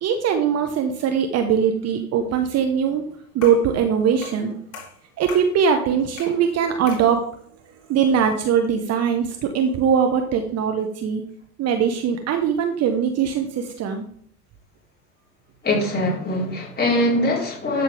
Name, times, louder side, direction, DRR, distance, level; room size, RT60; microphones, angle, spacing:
voice 1, 0.0-3.0 3.3-4.6 5.2-7.2 7.9-11.2 11.6-14.0, right 7 dB, 35° right, 5 dB, 1.1 m, -21 dB
sound 1, 3.4-3.7 4.2-4.5 4.7-5.5 6.2-6.4 6.9-7.1, left 5 dB, 40° left, 4.1 m, -38 dB
voice 2, 15.6-17.8, left 1 dB, 20° left, -4 dB, 4.4 m, -22 dB
13.0 x 6.8 x 3.5 m, 0.62 s
figure-of-eight pair, 80°, 47 cm